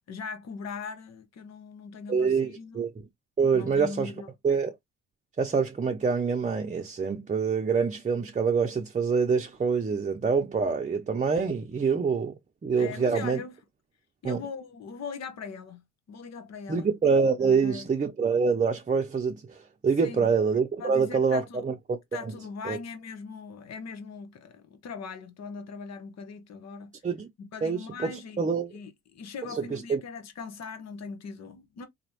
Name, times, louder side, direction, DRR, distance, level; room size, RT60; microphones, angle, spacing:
voice 1, 0.1-2.8 3.5-4.3 12.8-13.6 14.2-15.8 16.1-16.9 17.4-17.9 20.0-20.3 20.8-21.6 22.1-26.9 27.4-31.9, left 5 dB, 60° left, 1.2 m, -40 dB
voice 2, 2.1-2.9 3.4-4.1 4.4-4.7 5.4-12.3 12.6-13.4 14.2-14.4 16.7-22.3 22.6-22.8 27.0-27.3 27.6-28.7 29.5-30.0, right 5 dB, 25° right, 0.7 m, -26 dB
4.2 x 3.0 x 2.9 m
cardioid pair, 90°, 30 cm